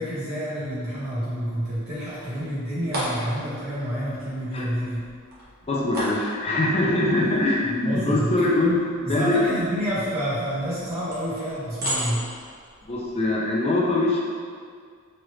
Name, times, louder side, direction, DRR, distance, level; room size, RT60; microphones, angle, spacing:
voice 1, 0.0-5.1 7.6-8.4 9.0-12.3, equal, 25° right, -12 dB, 1.2 m, -29 dB
dropping heavy nails into a box, 1.7-13.4, equal, 45° right, 0.7 m, -37 dB
voice 2, 5.7-9.4 12.8-14.2, left 2 dB, 25° left, -4 dB, 0.4 m, -23 dB
3.1 x 2.5 x 3.1 m, 2.1 s
head